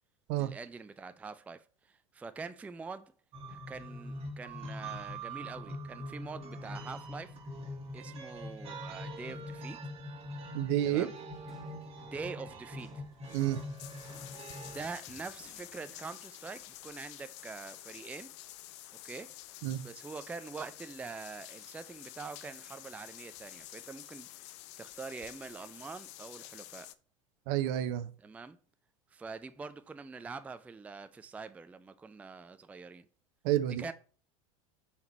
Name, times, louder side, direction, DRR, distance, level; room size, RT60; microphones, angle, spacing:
voice 1, 0.4-3.1 3.5-7.4 7.9-9.8 10.8-11.1 12.0-13.0 14.7-18.3 19.0-19.3 19.8-24.5 24.8-26.9 28.2-28.6 29.1-33.1 33.8-33.9, right 4 dB, 10° right, 0.4 m, -45 dB
sound 1, 3.3-14.9, equal, 35° right, 1.7 m, -43 dB
voice 2, 10.5-11.1 13.3-13.6 19.6-19.8 27.5-28.1 33.4-33.8, right 12 dB, 55° right, 0.6 m, -29 dB
sound 2, 10.8-16.0, left 2 dB, 20° left, 2.6 m, -60 dB
sound 3, 12.6-12.7 13.1-26.9, left 14 dB, 55° left, 0.5 m, -50 dB
5.7 x 4.4 x 4.3 m
figure-of-eight pair, 80°, 17 cm